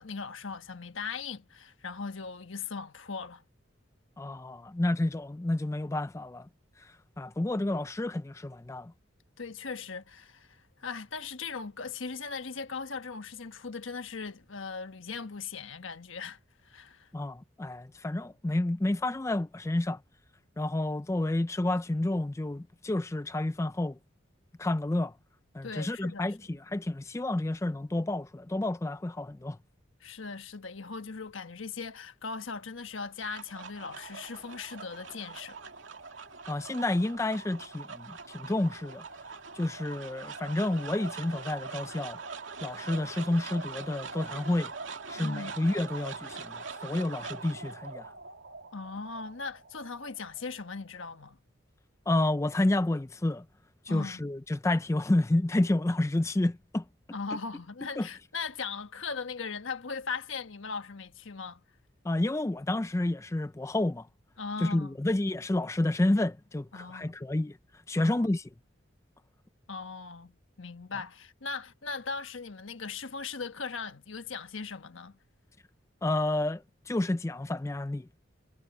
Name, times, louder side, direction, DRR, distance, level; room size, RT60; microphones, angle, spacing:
voice 1, 0.0-3.4 9.4-16.4 16.6-17.1 25.6-26.3 30.0-35.6 45.1-45.6 48.7-51.4 53.9-54.2 57.1-61.6 64.4-65.0 66.7-67.1 68.0-68.3 69.7-75.2, left 5 dB, 80° left, 1.3 m, -39 dB
voice 2, 4.2-6.5 6.8-8.9 17.1-20.0 20.6-24.0 24.6-25.1 25.5-29.6 36.5-39.0 39.5-42.2 42.6-44.7 45.1-48.1 52.1-53.4 53.8-56.8 58.0-58.1 62.0-64.1 64.6-67.6 67.9-68.5 76.0-78.1, left 1 dB, 15° left, 0.3 m, -30 dB
sound 1, 33.0-51.3, right 4 dB, 75° right, 2.4 m, -43 dB
head